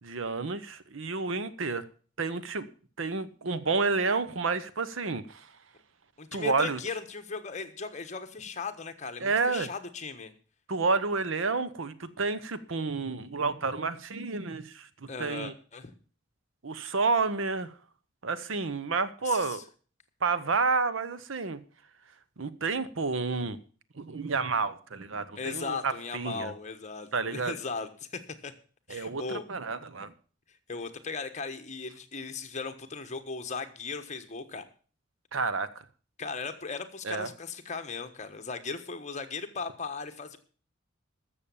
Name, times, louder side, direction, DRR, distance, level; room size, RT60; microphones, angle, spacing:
voice 1, 0.0-1.8 2.2-2.7 3.0-5.5 6.3-6.8 9.2-9.7 10.7-15.5 16.6-17.7 18.2-19.6 20.2-21.6 22.4-23.6 24.0-26.5 27.1-27.5 28.9-30.1 35.3-35.7 37.0-37.3, right 4 dB, 70° right, 0.9 m, -30 dB
voice 2, 6.2-10.3 15.1-15.9 19.2-19.6 25.4-28.5 28.9-29.4 30.7-34.6 36.2-40.4, left 4 dB, 35° left, 1.3 m, -37 dB
13.5 x 7.0 x 7.1 m
head